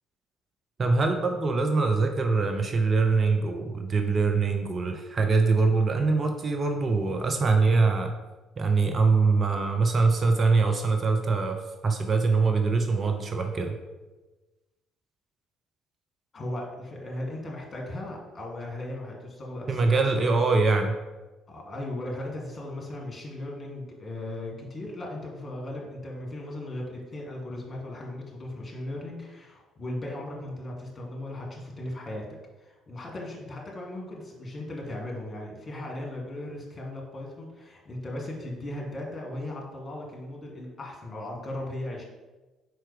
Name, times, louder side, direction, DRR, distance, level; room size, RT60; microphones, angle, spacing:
voice 1, 0.8-8.1 8.6-13.8 19.7-21.0, right 4 dB, 35° right, 5 dB, 0.6 m, -23 dB
voice 2, 16.3-20.4 21.5-32.3 32.6-42.0, left 1 dB, 35° left, -1 dB, 1.8 m, -37 dB
4.7 x 4.5 x 4.9 m, 1.2 s
figure-of-eight pair, 50°, 0 cm